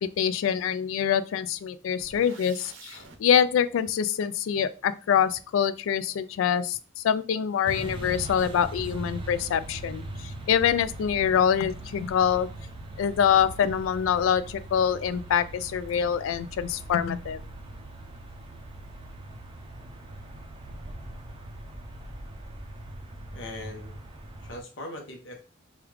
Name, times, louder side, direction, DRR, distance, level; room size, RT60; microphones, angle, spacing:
voice 1, 0.0-12.5 13.0-17.4, left 8 dB, 90° left, 0.3 m, -25 dB
sound 1, 2.0-3.2, right 4 dB, 80° right, 0.6 m, -47 dB
sound 2, 7.7-24.6, right 1 dB, 25° right, 0.4 m, -41 dB
voice 2, 23.3-24.0 24.4-25.4, left 1 dB, 70° left, 0.9 m, -40 dB
3.1 x 2.3 x 3.3 m
head